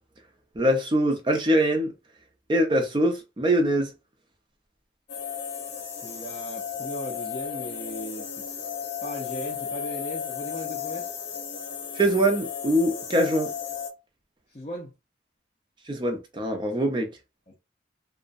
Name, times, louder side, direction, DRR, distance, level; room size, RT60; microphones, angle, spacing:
voice 1, 0.6-1.9 2.5-3.9 12.0-13.5 15.9-17.1, right 1 dB, 25° right, 0.5 m, -23 dB
sound 1, 5.1-13.9, left 7 dB, 80° left, 0.7 m, -34 dB
voice 2, 5.9-8.5 9.0-11.1 14.5-14.9 17.5-17.6, equal, 35° left, 0.6 m, -38 dB
2.4 x 2.1 x 2.5 m
head